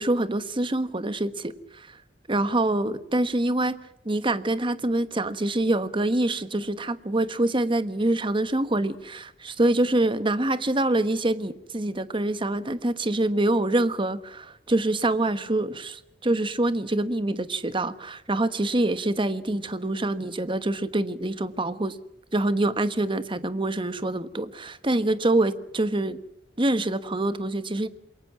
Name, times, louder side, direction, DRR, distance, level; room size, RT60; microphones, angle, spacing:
voice 1, 0.0-1.9 2.3-3.7 4.0-21.9 22.3-26.2 26.6-27.9, right 2 dB, 30° right, 1.3 m, -25 dB
28.0 x 22.5 x 6.1 m
head